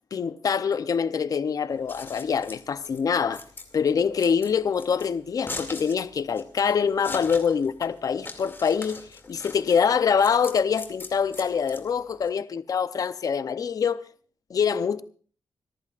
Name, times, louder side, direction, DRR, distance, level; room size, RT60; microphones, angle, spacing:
voice 1, 0.1-3.4 3.7-9.0 9.3-14.0 14.5-15.0, left 6 dB, 55° left, 0.7 m, -25 dB
Scissors, 1.7-12.3, left 3 dB, 30° left, 2.4 m, -41 dB
26.0 x 14.5 x 2.5 m
wide cardioid pair, 105°, 7 cm